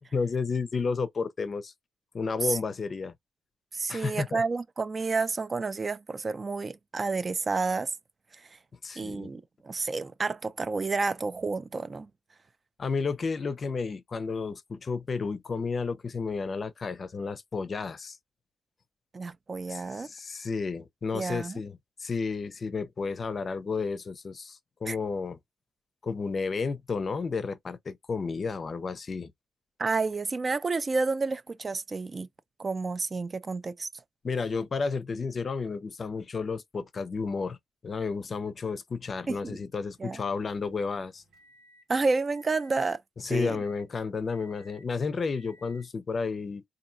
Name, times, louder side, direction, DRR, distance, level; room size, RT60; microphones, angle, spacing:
voice 1, 0.1-1.7 2.1-3.1 3.9-4.4 8.8-9.3 12.8-18.2 19.7-25.4 26.0-29.3 34.2-37.6 37.8-41.2 43.2-46.6, left 4 dB, 45° left, 0.6 m, -32 dB
voice 2, 3.7-7.9 9.0-12.1 19.1-20.1 21.1-21.6 24.9-25.0 29.8-32.3 32.6-33.9 39.3-39.6 40.0-40.2 41.9-43.0 43.3-43.6, right 4 dB, 35° right, 0.5 m, -30 dB
sound 1, 39.8-41.9 42.3-42.9 43.3-43.9 44.3-44.9 45.3-45.9, equal, 80° right, 1.3 m, -60 dB
4.2 x 2.6 x 2.6 m
cardioid pair, 90°, 0 cm